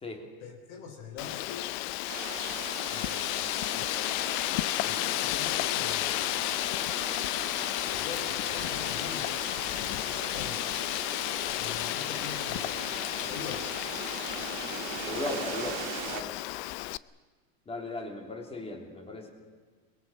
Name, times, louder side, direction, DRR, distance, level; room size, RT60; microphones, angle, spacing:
voice 1, 0.4-1.7 2.8-3.9 4.8-6.2 7.8-9.4 10.0-10.8 11.5-12.8 13.2-13.8, left 6 dB, 70° left, 3 dB, 3.9 m, -44 dB
Wind, 1.2-17.0, left 19 dB, 55° left, 0.6 m, -32 dB
sound 1, 2.1-16.2, right 12 dB, 65° right, 2.0 m, -41 dB
voice 2, 15.0-16.4 17.7-19.3, left 2 dB, 15° left, 3 dB, 3.2 m, -37 dB
23.5 x 22.5 x 7.4 m, 1.5 s
supercardioid pair, 155°, 42 cm